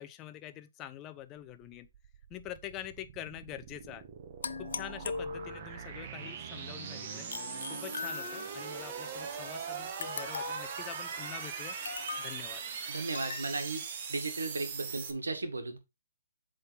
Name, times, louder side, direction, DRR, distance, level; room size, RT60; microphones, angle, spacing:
voice 1, 0.0-1.9 2.3-4.0 4.6-7.3 7.7-11.8 12.2-12.6, left 12 dB, 25° left, 0.6 m, -45 dB
sound 1, 1.4-15.1, right 6 dB, 40° right, 1.4 m, -41 dB
sound 2, 4.4-5.8 7.3-8.7 10.0-10.8 11.8-12.4 13.1-13.5, left 5 dB, 70° left, 0.6 m, -39 dB
voice 2, 12.9-13.8 14.1-15.8, right 3 dB, 85° right, 1.8 m, -35 dB
8.0 x 3.9 x 4.0 m
hypercardioid pair, 140°, 0 cm